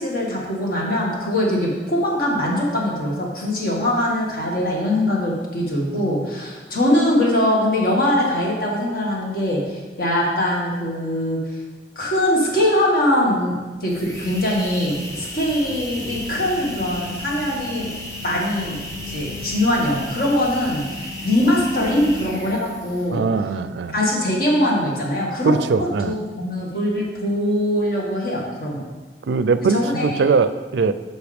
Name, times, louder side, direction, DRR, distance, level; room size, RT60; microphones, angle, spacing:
voice 1, 0.0-11.4 12.0-13.5 13.8-17.9 18.2-18.8 19.1-23.3 23.9-28.8 29.7-30.2, left 1 dB, 55° left, -3 dB, 2.0 m, -22 dB
sound 1, 13.9-23.2, left 2 dB, 15° left, 1.1 m, -34 dB
voice 2, 23.1-23.9 25.4-26.2 29.3-30.9, right 4 dB, 75° right, 12 dB, 0.4 m, -20 dB
9.6 x 6.4 x 3.5 m, 1.3 s
head